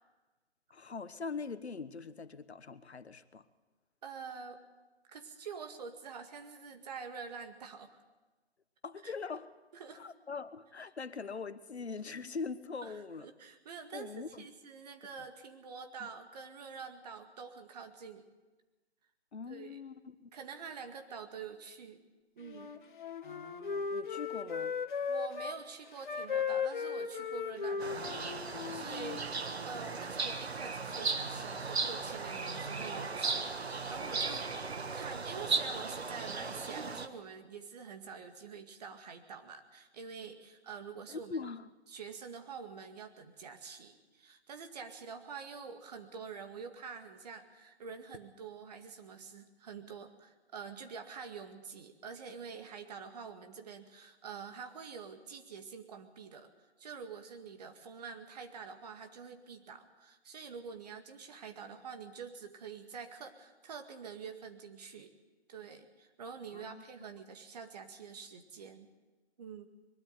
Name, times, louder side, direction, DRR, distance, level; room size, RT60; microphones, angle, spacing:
voice 1, 0.7-3.4 8.8-9.5 10.0-13.3 13.9-14.5 16.0-16.1 19.3-20.3 23.2-24.8 41.1-41.7 66.5-66.8, left 4 dB, 75° left, 12 dB, 1.3 m, -42 dB
voice 2, 4.0-4.6 5.1-8.0 9.0-9.1 9.7-10.0 12.8-18.3 19.5-19.8 20.3-22.0 22.4-22.7 25.1-41.4 41.9-56.5 56.8-65.1 65.5-68.9 69.4-69.7, right 5 dB, 35° right, 6 dB, 2.1 m, -47 dB
Wind instrument woodwind instrument, 22.4-25.6 26.0-29.2, left 6 dB, 45° left, 1.4 m, -36 dB
sound 1, 27.8-37.1, right 4 dB, 70° right, 1.6 m, -36 dB
22.5 x 13.0 x 9.4 m, 1.2 s
figure-of-eight pair, 145°, 33 cm